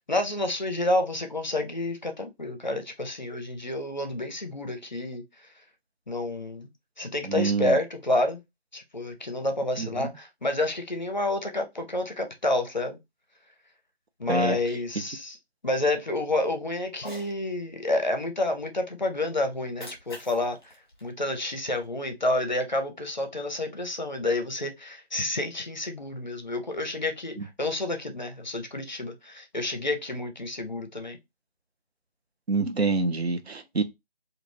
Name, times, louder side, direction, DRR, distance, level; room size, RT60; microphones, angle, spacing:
voice 1, 0.1-5.2 6.1-6.7 7.0-8.4 8.7-13.0 14.2-15.4 15.6-20.7 21.0-31.2, left 2 dB, 45° left, 0.6 m, -29 dB
voice 2, 7.2-7.8 9.8-10.1 14.3-14.6 27.4-27.5 32.5-33.8, right 3 dB, 80° right, 0.6 m, -26 dB
Cat, 16.9-17.3 19.5-21.9, equal, 25° left, 0.9 m, -46 dB
2.4 x 2.3 x 3.1 m
figure-of-eight pair, 165°, 31 cm